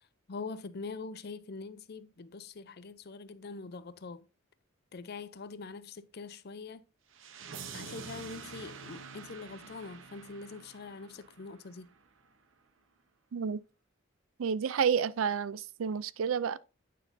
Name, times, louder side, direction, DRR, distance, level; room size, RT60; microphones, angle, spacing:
voice 1, 0.3-4.2 4.9-6.8 7.7-11.9, left 4 dB, 50° left, 0.5 m, -43 dB
sound 1, 7.1-12.1, right 5 dB, 70° right, 0.8 m, -47 dB
voice 2, 14.4-16.6, right 7 dB, 85° right, 0.4 m, -30 dB
9.1 x 5.9 x 2.6 m
head